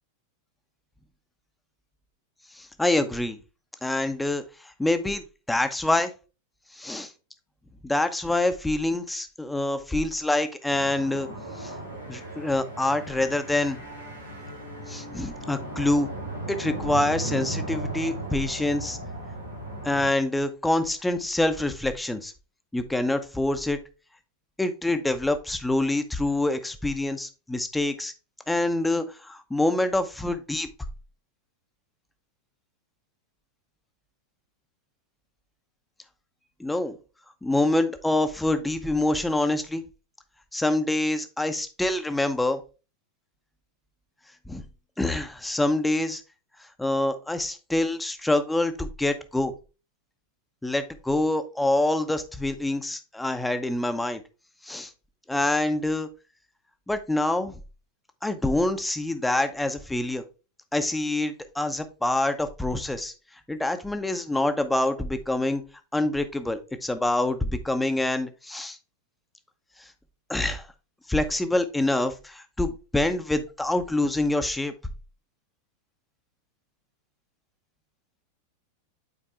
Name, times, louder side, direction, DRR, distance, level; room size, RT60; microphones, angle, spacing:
voice 1, 2.5-3.4 3.8-6.1 6.7-7.1 7.8-11.3 11.6-11.7 12.1-13.8 14.9-16.1 16.5-19.0 19.8-22.3 22.7-23.8 24.6-28.1 28.5-30.7 36.6-36.9 37.4-39.8 40.5-42.6 44.5-44.6 45.0-46.2 46.8-49.5 50.6-54.2 54.6-54.9 55.3-56.1 56.9-57.6 58.2-60.2 60.7-63.1 63.5-65.6 65.9-68.8 70.3-70.7 71.1-74.7, left 2 dB, 5° left, 9 dB, 0.8 m, -26 dB
sound 1, 10.7-20.1, right 1 dB, 90° right, 4.5 m, -36 dB
8.7 x 4.5 x 3.4 m, 0.31 s
figure-of-eight pair, 90°, 0 cm